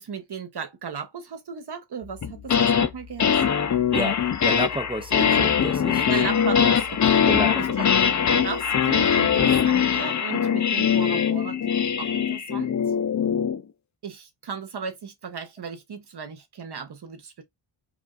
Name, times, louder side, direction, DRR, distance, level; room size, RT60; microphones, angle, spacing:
voice 1, 0.0-3.6 6.1-7.3 7.6-7.8 8.4-12.8 14.0-17.4, right 6 dB, 55° right, 1.0 m, -36 dB
sound 1, 2.2-2.9 3.2-13.6, left 7 dB, 40° left, 0.5 m, -22 dB
voice 2, 3.9-6.1 7.3-7.6, right 1 dB, 10° right, 0.4 m, -30 dB
4.7 x 2.4 x 2.4 m
wide cardioid pair, 160°, 48 cm